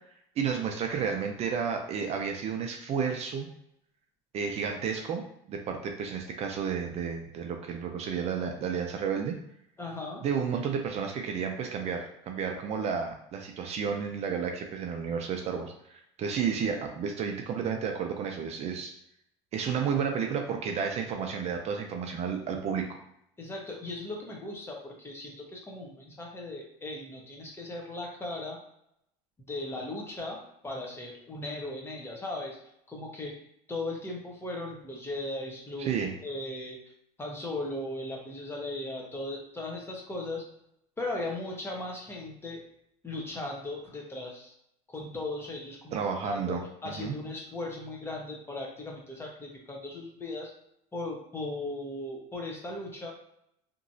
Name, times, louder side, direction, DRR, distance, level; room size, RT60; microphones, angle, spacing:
voice 1, 0.4-3.5 4.3-9.4 10.2-18.9 19.5-23.0 35.8-36.1 45.9-47.2, right 6 dB, 45° right, 3 dB, 0.5 m, -32 dB
voice 2, 9.8-10.2 23.4-28.6 29.5-32.6 32.9-33.3 33.7-36.0 36.2-36.8 37.2-40.4 41.0-42.6 43.0-44.5 44.9-50.5 50.9-53.1, left 2 dB, 15° left, 0 dB, 0.9 m, -37 dB
2.9 x 2.6 x 2.7 m, 0.74 s
supercardioid pair, 110°, 15 cm